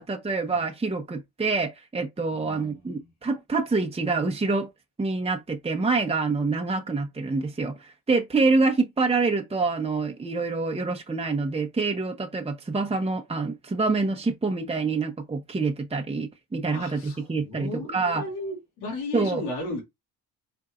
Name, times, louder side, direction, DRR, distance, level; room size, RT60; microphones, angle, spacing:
voice 1, 0.0-4.7 5.0-18.2 19.1-19.4, right 3 dB, 15° right, 0.9 m, -26 dB
voice 2, 2.3-3.1 16.7-19.8, left 1 dB, 90° left, 2.6 m, -35 dB
4.4 x 4.0 x 2.5 m
supercardioid pair, 65°, 38 cm